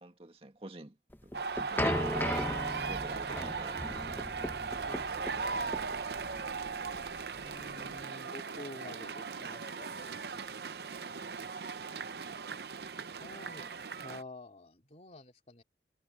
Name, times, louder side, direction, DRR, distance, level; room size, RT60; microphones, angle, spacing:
voice 1, 0.0-2.1 2.7-4.1 13.6-13.7, right 2 dB, 35° right, 2.0 m, -48 dB
sound 1, 1.1-8.0, left 1 dB, 10° left, 1.0 m, -37 dB
sound 2, 1.3-14.2, right 5 dB, 65° right, 0.7 m, -38 dB
voice 2, 4.7-5.9 6.6-7.1 7.4-10.6 13.2-13.6 13.9-15.6, left 1 dB, 40° left, 3.2 m, -50 dB
head